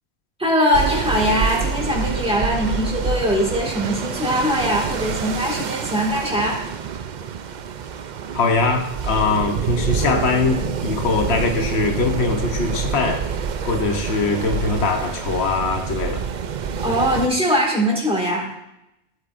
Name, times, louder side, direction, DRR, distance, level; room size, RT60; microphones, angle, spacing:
voice 1, 0.4-6.6 16.8-18.5, equal, 5° right, -2 dB, 1.9 m, -21 dB
sound 1, 0.7-17.3, right 7 dB, 55° right, 0.6 m, -27 dB
voice 2, 8.3-13.3 13.6-16.2, left 4 dB, 90° left, 4 dB, 1.1 m, -22 dB
14.0 x 7.9 x 2.5 m, 0.87 s
omnidirectional pair, 1.1 m